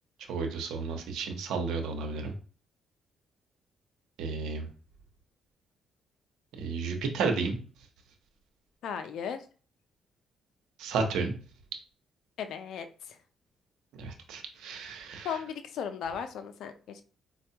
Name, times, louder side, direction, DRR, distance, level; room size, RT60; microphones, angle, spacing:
voice 1, 0.3-2.3 4.2-4.7 6.6-7.6 10.8-11.3 14.0-15.4, right 4 dB, 85° right, 5 dB, 0.7 m, -32 dB
voice 2, 8.8-9.4 12.4-13.2 15.2-17.0, left 7 dB, 75° left, 9 dB, 0.4 m, -36 dB
4.2 x 2.3 x 2.8 m, 0.40 s
cardioid pair, 90°, 0 cm